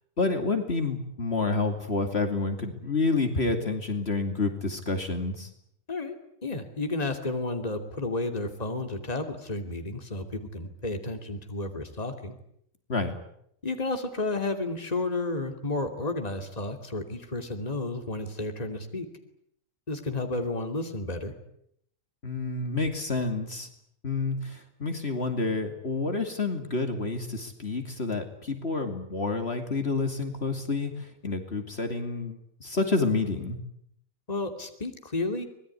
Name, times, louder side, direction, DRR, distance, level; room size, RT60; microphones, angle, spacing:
voice 1, 0.2-5.5 12.9-13.2 22.2-23.7 24.0-33.6, left 3 dB, 50° left, 6 dB, 2.9 m, -29 dB
voice 2, 6.4-12.4 13.6-19.1 19.9-21.3 34.3-35.4, left 2 dB, 30° left, 5 dB, 2.8 m, -32 dB
25.0 x 21.0 x 9.9 m, 0.73 s
omnidirectional pair, 1.4 m